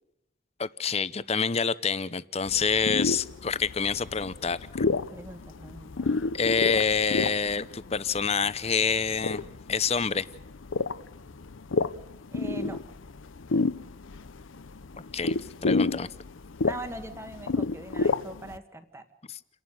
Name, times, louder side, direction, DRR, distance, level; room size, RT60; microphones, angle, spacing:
voice 1, 0.6-4.8 6.3-10.3 15.0-16.1 19.3-19.4, left 5 dB, 30° left, 15 dB, 0.7 m, -27 dB
sound 1, 2.5-18.6, left 3 dB, 80° left, 0.7 m, -31 dB
voice 2, 5.1-6.3 12.3-12.8 16.7-19.0, right 1 dB, 15° right, 8 dB, 1.6 m, -41 dB
29.0 x 11.5 x 9.4 m, 0.88 s
head